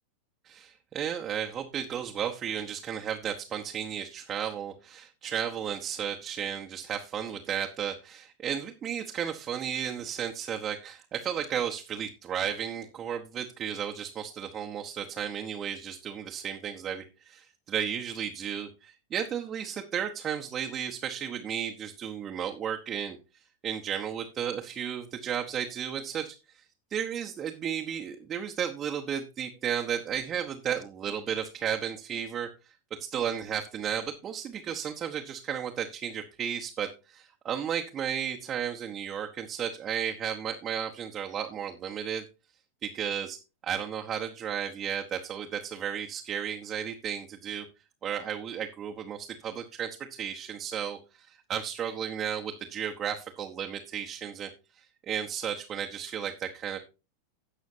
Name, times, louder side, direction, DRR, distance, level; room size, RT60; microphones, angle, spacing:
voice 1, 0.4-23.2 23.6-26.6 26.9-32.5 33.0-42.2 42.8-43.4 43.6-47.6 48.0-54.5 54.8-56.8, right 8 dB, 25° right, 1 dB, 1.0 m, -34 dB
16.5 x 6.2 x 2.7 m, 0.29 s
figure-of-eight pair, 90°, 0 cm